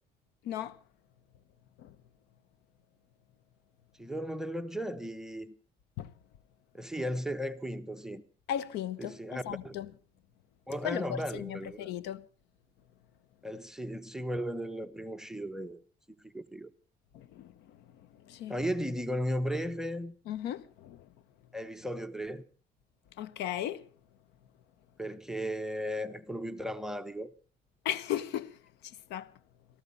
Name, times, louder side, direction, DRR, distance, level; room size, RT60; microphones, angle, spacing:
voice 1, 0.4-0.8 1.8-1.9 6.0-6.1 8.5-9.9 10.8-12.3 17.1-17.8 18.3-18.6 20.3-21.1 23.2-23.9 27.8-28.6 28.8-29.3, left 11 dB, 85° left, 0.9 m, -36 dB
voice 2, 4.0-5.5 6.7-8.2 9.0-9.8 10.7-11.9 13.4-15.8 16.3-16.7 18.5-20.1 21.5-22.4 25.0-27.3, equal, 5° right, 0.8 m, -35 dB
18.0 x 14.0 x 5.4 m
cardioid pair, 110°, 17 cm